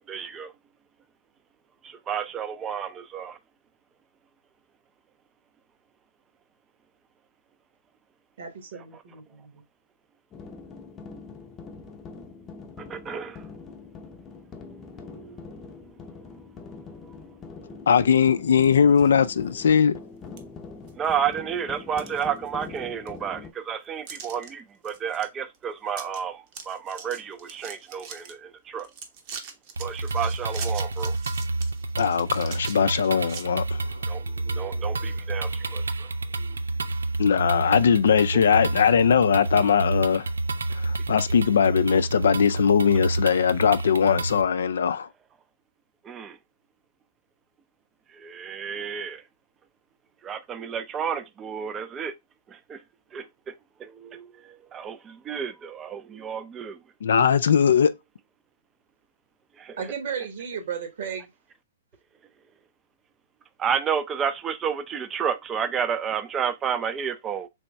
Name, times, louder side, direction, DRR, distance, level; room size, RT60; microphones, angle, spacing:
voice 1, 0.1-0.5 1.8-3.4 12.9-13.4 15.0-15.4 21.0-28.9 29.8-31.1 34.1-36.1 36.4-36.6 46.0-46.4 48.2-49.2 50.2-52.1 52.5-52.8 53.1-53.2 53.8-54.3 54.7-56.8 59.6-59.8 63.6-67.5, right 7 dB, 20° right, 0.4 m, -31 dB
voice 2, 8.4-9.6 59.8-61.3, right 7 dB, 60° right, 1.2 m, -34 dB
sound 1, 10.3-23.5, left 4 dB, 25° left, 0.7 m, -43 dB
voice 3, 17.9-20.0 32.0-33.8 37.2-40.3 40.8-45.1 57.0-58.0, left 7 dB, 70° left, 0.3 m, -20 dB
sound 2, 18.5-19.1 19.6-19.7 20.4-20.5 20.9-21.3 21.7-22.8 23.1-23.2 24.1-24.5 24.8-25.3 25.5-25.6 25.9-26.2 26.5-28.3 28.8-33.4, right 6 dB, 45° right, 0.8 m, -42 dB
sound 3, 29.8-44.4, right 2 dB, 80° right, 0.3 m, -29 dB
3.4 x 3.0 x 3.2 m
hypercardioid pair, 125°, 0 cm